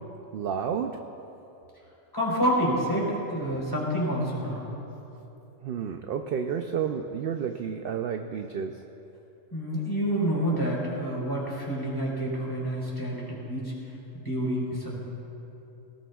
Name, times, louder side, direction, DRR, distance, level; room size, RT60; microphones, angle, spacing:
voice 1, 0.3-1.0 5.6-8.8, right 7 dB, 60° right, 6 dB, 0.6 m, -31 dB
voice 2, 2.1-4.6 9.5-13.7 14.1-15.0, equal, 15° left, -5 dB, 3.8 m, -28 dB
18.5 x 18.5 x 2.3 m, 3.0 s
omnidirectional pair, 1.3 m